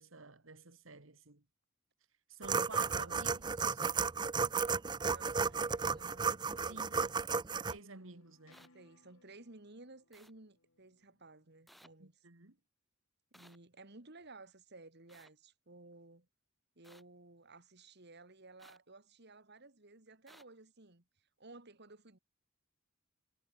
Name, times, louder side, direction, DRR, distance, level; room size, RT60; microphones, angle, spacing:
voice 1, 0.0-1.4 2.3-3.8 6.7-7.1 7.7-8.7 12.0-12.5, right 3 dB, 70° right, 2.2 m, -51 dB
sound 1, 2.4-7.7, right 5 dB, 20° right, 0.4 m, -33 dB
voice 2, 5.1-6.9 8.7-12.3 13.3-16.3 16.8-21.0 21.4-22.2, right 2 dB, 55° right, 2.3 m, -56 dB
sound 2, 6.4-11.9, left 2 dB, 85° left, 5.5 m, -71 dB
sound 3, 8.5-8.7 10.1-10.3 11.7-11.9 13.3-13.6 15.1-15.3 16.8-17.0 18.6-18.8 20.3-20.4, equal, ahead, 2.3 m, -60 dB
head